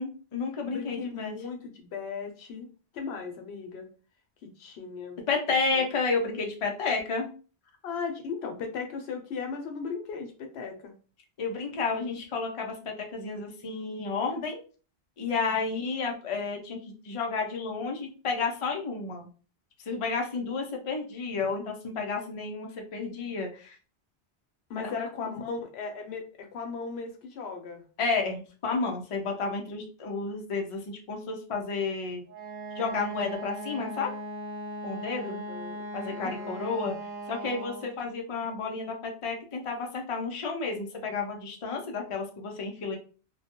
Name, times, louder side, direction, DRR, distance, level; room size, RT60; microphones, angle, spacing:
voice 1, 0.0-1.4 5.3-7.3 11.4-14.6 15.2-19.3 19.9-23.8 24.8-25.4 28.0-32.2 32.8-34.1 34.8-35.4 35.9-37.0 37.3-43.0, left 4 dB, 45° left, 2 dB, 0.4 m, -31 dB
voice 2, 0.7-2.7 2.9-3.9 4.4-5.2 5.7-5.9 7.8-10.9 24.7-27.8 35.2-35.9 36.2-36.7, left 5 dB, 75° left, 4 dB, 0.8 m, -37 dB
Wind instrument woodwind instrument, 32.3-38.0, right 1 dB, 65° right, 0.9 m, -39 dB
2.2 x 2.1 x 2.8 m, 0.37 s
omnidirectional pair, 1.1 m